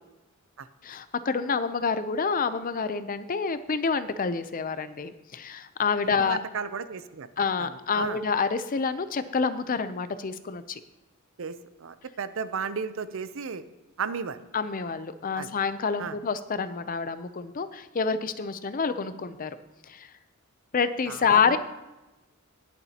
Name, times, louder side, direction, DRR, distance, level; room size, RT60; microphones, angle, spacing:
voice 1, 0.8-6.4 7.4-10.8 14.5-19.5 19.9-20.1 20.7-21.6, left 5 dB, 40° left, 12 dB, 0.5 m, -28 dB
voice 2, 6.0-7.3 7.6-8.2 11.4-11.5 11.8-13.6 14.0-14.4 15.3-15.5 16.0-16.2 21.1-21.6, right 6 dB, 65° right, 13 dB, 0.6 m, -34 dB
20.0 x 6.9 x 2.9 m, 1.1 s
head